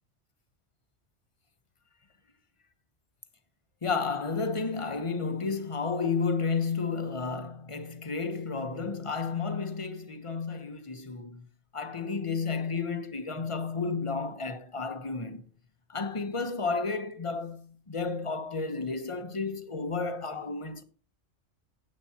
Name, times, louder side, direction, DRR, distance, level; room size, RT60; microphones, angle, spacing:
voice 1, 3.8-11.4 11.7-15.4 15.9-20.8, left 4 dB, 30° left, 1.0 m, -32 dB
15.0 x 8.7 x 2.9 m
omnidirectional pair, 1.2 m